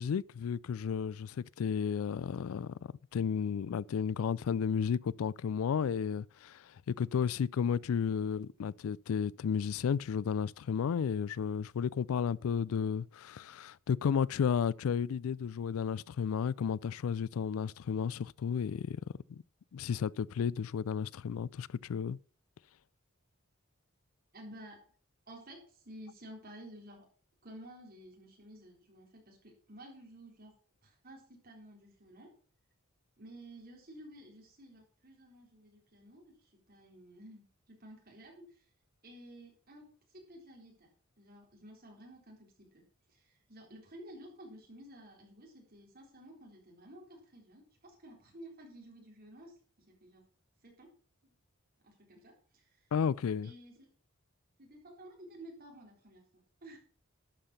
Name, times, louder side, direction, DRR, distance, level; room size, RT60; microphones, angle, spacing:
voice 1, 0.0-2.7 3.1-19.0 19.3-19.4 19.7-22.2 52.9-53.5, left 7 dB, 85° left, 0.4 m, -33 dB
voice 2, 24.3-24.9 25.3-27.1 27.4-30.5 30.8-32.3 33.2-38.7 39.0-42.8 43.1-49.6 49.9-50.2 50.6-50.9 51.2-51.3 51.8-52.9 53.4-53.9 54.6-56.2 56.6-56.8, right 1 dB, 45° right, 3.7 m, -53 dB
11.5 x 5.7 x 5.7 m
head